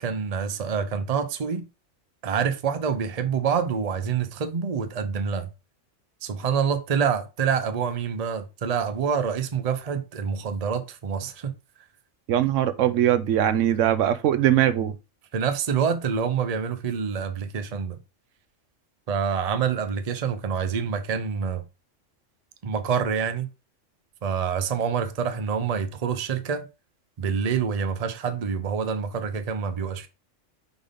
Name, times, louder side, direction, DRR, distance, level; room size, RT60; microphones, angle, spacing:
voice 1, 0.0-1.6 2.2-5.5 6.2-11.5 15.3-18.0 19.1-21.6 22.6-23.5 24.2-26.6 27.2-30.1, right 6 dB, 40° right, 0.7 m, -26 dB
voice 2, 12.3-15.0, right 11 dB, 75° right, 1.0 m, -21 dB
5.1 x 4.1 x 5.1 m
omnidirectional pair, 1.3 m